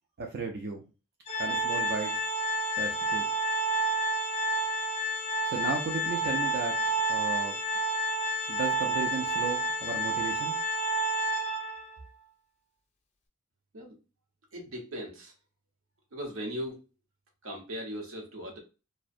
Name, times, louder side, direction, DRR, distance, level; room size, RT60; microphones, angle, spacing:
voice 1, 0.2-0.8 1.4-2.2 2.8-3.3 5.4-7.6 8.5-10.6, right 4 dB, 50° right, 1 dB, 0.4 m, -35 dB
Organ, 1.3-12.0, right 2 dB, 35° left, 0.5 m, -29 dB
voice 2, 14.5-15.3 16.1-16.8 17.4-18.6, equal, 80° right, 0 dB, 0.9 m, -38 dB
2.4 x 2.1 x 2.6 m, 0.31 s
head